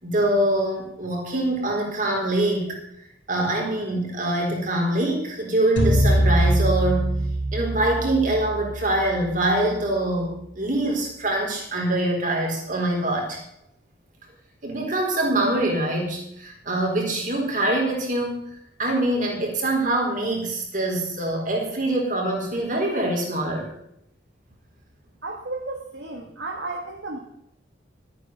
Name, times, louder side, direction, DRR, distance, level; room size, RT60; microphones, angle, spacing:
voice 1, 0.0-2.8 3.3-7.1 7.5-13.4 14.6-23.7, right 1 dB, 45° right, 0 dB, 4.0 m, -24 dB
sound 1, 5.8-10.1, equal, 70° left, 3.1 m, -23 dB
voice 2, 25.2-27.2, right 2 dB, 65° right, 1 dB, 1.5 m, -33 dB
13.0 x 9.1 x 6.7 m, 0.75 s
head